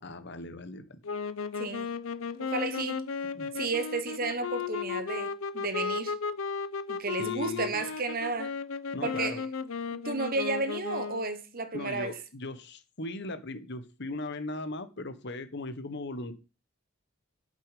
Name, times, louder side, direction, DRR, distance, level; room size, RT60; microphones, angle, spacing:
voice 1, 0.0-1.0 3.3-3.5 7.2-7.7 8.9-9.4 11.7-16.3, left 2 dB, 55° left, 1.3 m, -38 dB
sound 1, 1.0-11.4, left 5 dB, 70° left, 0.7 m, -35 dB
voice 2, 1.6-2.0 2.4-3.1 3.5-6.1 6.9-8.5 9.0-9.5 9.9-12.2, right 3 dB, 45° right, 1.1 m, -33 dB
8.6 x 6.8 x 5.1 m
head